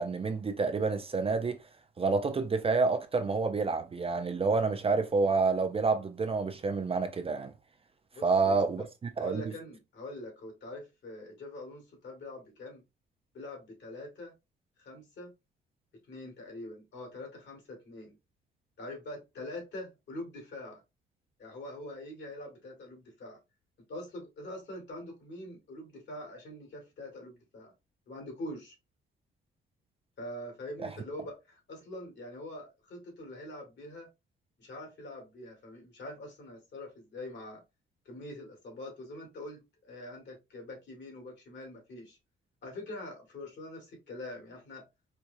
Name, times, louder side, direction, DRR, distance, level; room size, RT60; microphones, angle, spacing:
voice 1, 0.0-1.6 2.0-7.5 8.2-8.8 9.2-9.4 30.8-30.9, right 4 dB, 30° right, 0.6 m, -28 dB
voice 2, 8.1-8.6 9.2-12.8 13.3-14.3 14.8-15.3 16.1-18.2 18.8-20.8 21.4-23.4 23.9-27.7 28.1-28.8 30.2-34.1 34.6-37.6 38.1-42.2 42.6-44.9, left 1 dB, 60° left, 2.0 m, -44 dB
4.5 x 2.4 x 2.7 m
cardioid pair, 90°, 20 cm